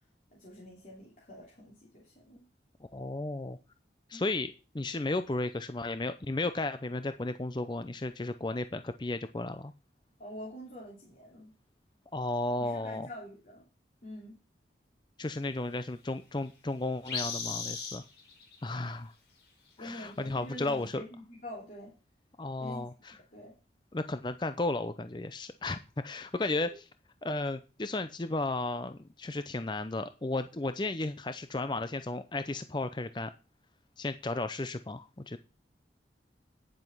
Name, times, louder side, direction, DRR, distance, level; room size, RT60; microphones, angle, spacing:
voice 1, 0.3-2.5 4.1-4.2 10.2-11.5 12.6-13.7 14.0-14.4 19.8-21.9 22.6-23.5 26.4-26.6, left 1 dB, 45° left, -4 dB, 3.0 m, -46 dB
voice 2, 2.9-3.6 4.1-9.7 12.1-13.1 15.2-18.0 18.6-19.1 19.8-21.0 22.4-23.2 23.9-26.7 27.2-33.3 34.0-35.4, left 2 dB, 25° left, 10 dB, 0.5 m, -34 dB
sound 1, 17.1-18.7 20.9-21.0, left 5 dB, 70° left, 4.4 m, -36 dB
10.0 x 7.7 x 5.4 m, 0.31 s
head